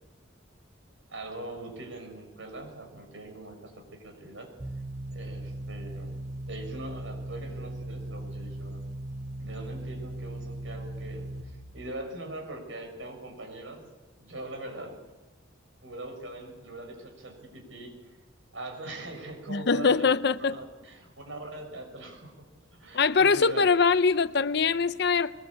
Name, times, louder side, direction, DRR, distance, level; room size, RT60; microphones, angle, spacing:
voice 1, 1.1-4.5 5.1-6.2 6.4-8.8 9.4-13.9 14.2-15.0 15.8-17.9 18.5-20.1 20.4-22.5 22.7-23.7, right 2 dB, 85° right, 6.4 m, -42 dB
sound 1, 4.6-11.4, right 1 dB, 40° right, 5.2 m, -38 dB
voice 2, 19.5-20.6 22.9-25.3, left 5 dB, 60° left, 0.7 m, -23 dB
22.5 x 21.0 x 8.6 m
head